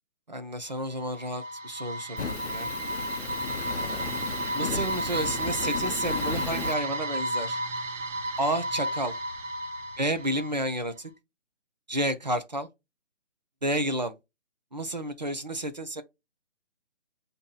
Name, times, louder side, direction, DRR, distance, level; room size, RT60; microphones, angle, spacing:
voice 1, 0.3-2.7 3.7-4.1 4.5-7.6 8.4-9.1 10.0-11.1 11.9-12.7 13.6-14.1 14.7-16.0, right 1 dB, 40° right, 0.5 m, -31 dB
sound 1, 0.7-10.8, right 1 dB, 85° right, 1.0 m, -33 dB
Fire, 2.2-6.8, left 6 dB, 60° left, 0.5 m, -35 dB
6.8 x 2.6 x 2.4 m
hypercardioid pair, 170°, 36 cm